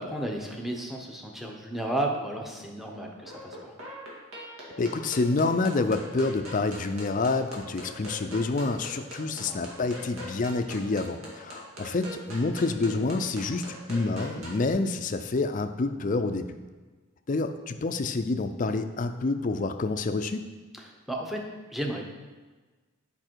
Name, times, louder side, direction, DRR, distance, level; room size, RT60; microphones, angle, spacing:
voice 1, 0.0-3.7 9.4-9.6 20.7-21.4 21.7-22.2, right 1 dB, ahead, 1 dB, 0.7 m, -33 dB
sound 1, 3.0-14.7, equal, 80° right, 2.0 m, -42 dB
voice 2, 4.8-16.5 17.3-20.4, left 3 dB, 35° left, 8 dB, 0.4 m, -28 dB
8.8 x 5.3 x 4.5 m, 1.3 s
head